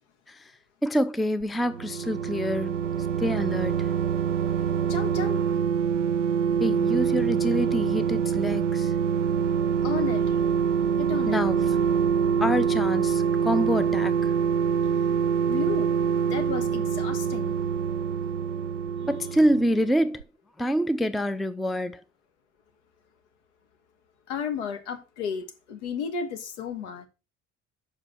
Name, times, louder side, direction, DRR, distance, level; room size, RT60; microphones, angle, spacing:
voice 1, 0.8-2.8 3.2-3.9 6.6-8.9 11.3-11.6 12.4-14.3 19.1-20.2 20.6-22.0, equal, ahead, 0.5 m, -26 dB
sound 1, 1.4-19.9 20.2-20.3, right 7 dB, 85° right, 0.5 m, -25 dB
voice 2, 4.9-5.8 6.1-6.2 9.8-10.4 11.0-11.4 15.5-15.9 16.2-17.5 24.3-27.1, left 6 dB, 65° left, 1.5 m, -33 dB
7.4 x 5.2 x 6.0 m
figure-of-eight pair, 60°, 36 cm